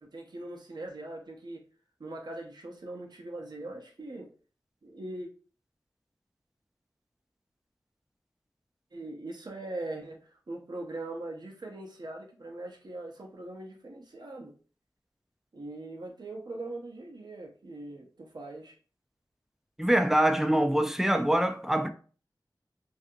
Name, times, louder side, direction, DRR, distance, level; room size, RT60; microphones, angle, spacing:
voice 1, 0.0-1.6 2.0-4.3 4.8-5.3 8.9-14.5 15.5-18.8, right 2 dB, 65° right, 0.6 m, -41 dB
voice 2, 19.8-21.9, right 1 dB, 5° right, 0.4 m, -24 dB
2.6 x 2.4 x 2.6 m
wide cardioid pair, 50°, 8 cm